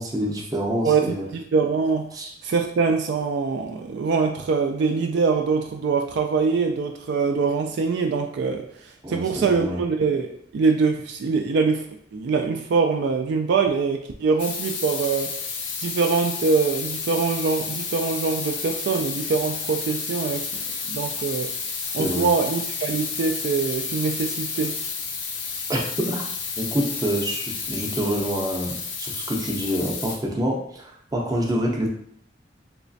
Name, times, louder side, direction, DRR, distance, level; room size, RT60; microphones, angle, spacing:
voice 1, 0.0-1.3 2.1-2.3 9.0-9.8 22.0-22.3 25.7-26.2 26.6-31.9, equal, 20° right, -1 dB, 0.6 m, -27 dB
voice 2, 0.8-2.1 2.4-8.6 9.1-15.3 15.8-20.5 20.9-21.5 21.9-24.8, right 4 dB, 65° right, 4 dB, 0.3 m, -23 dB
sound 1, 14.4-30.2, left 5 dB, 75° left, 0.6 m, -31 dB
3.2 x 3.0 x 2.6 m, 0.66 s
head